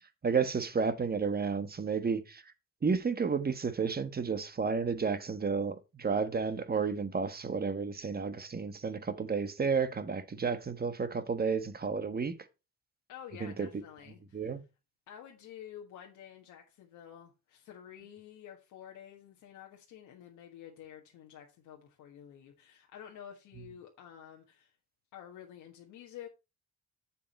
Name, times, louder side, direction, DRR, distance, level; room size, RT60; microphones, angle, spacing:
voice 1, 0.2-2.4 2.8-12.3 13.4-13.7 14.3-14.6, right 5 dB, 30° right, 1.3 m, -31 dB
voice 2, 13.1-14.5 15.1-24.7 25.1-26.3, left 10 dB, 90° left, 1.5 m, -50 dB
7.4 x 7.0 x 4.2 m
cardioid pair, 90°, 30 cm